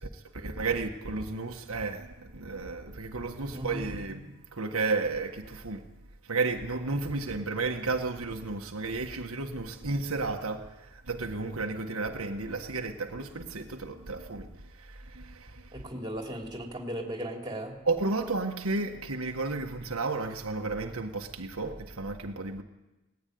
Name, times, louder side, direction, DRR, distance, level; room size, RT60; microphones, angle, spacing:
voice 1, 0.0-5.9 6.3-14.5 14.8-15.7 17.9-22.6, right 3 dB, 85° right, 1.6 m, -33 dB
voice 2, 3.5-3.8 15.7-17.8, right 1 dB, 20° right, 3.0 m, -36 dB
19.5 x 14.5 x 9.5 m
head